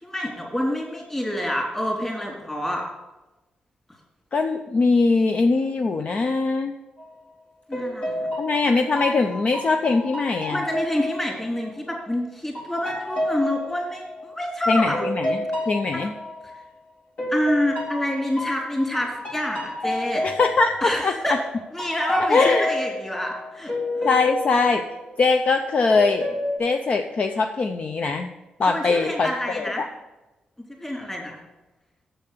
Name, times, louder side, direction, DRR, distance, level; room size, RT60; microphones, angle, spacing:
voice 1, 0.0-2.8 7.7-8.3 10.5-15.0 15.9-16.1 16.4-16.5 17.3-20.2 20.8-21.4 21.7-23.7 28.7-29.8 30.8-31.4, left 1 dB, 15° left, -2 dB, 3.2 m, -27 dB
voice 2, 4.3-6.7 8.4-10.6 14.7-15.4 15.7-16.1 20.2-21.4 22.2-22.7 24.0-24.8 25.2-26.3 26.6-28.3 28.6-29.8, left 3 dB, 45° left, 5 dB, 0.5 m, -21 dB
sound 1, 7.0-7.3 7.7-12.0 12.5-16.8 17.2-21.4 21.8-25.5 25.9-26.6, left 1 dB, 65° left, 3.6 m, -30 dB
7.1 x 6.9 x 6.6 m, 1.1 s
cardioid pair, 105°, 3 cm